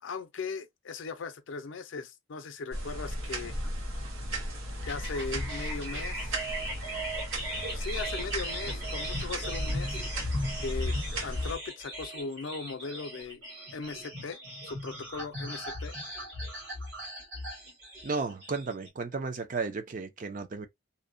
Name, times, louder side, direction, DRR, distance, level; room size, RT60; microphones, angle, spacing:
voice 1, 0.0-3.6 4.9-6.3 7.7-10.0 10.6-13.4 13.7-15.9, left 4 dB, 65° left, 0.4 m, -38 dB
sound 1, 2.7-11.6, right 1 dB, 80° right, 0.8 m, -36 dB
sound 2, 4.8-18.9, equal, 60° right, 1.5 m, -37 dB
voice 2, 18.0-20.7, right 4 dB, 40° right, 0.4 m, -34 dB
2.7 x 2.1 x 2.5 m
head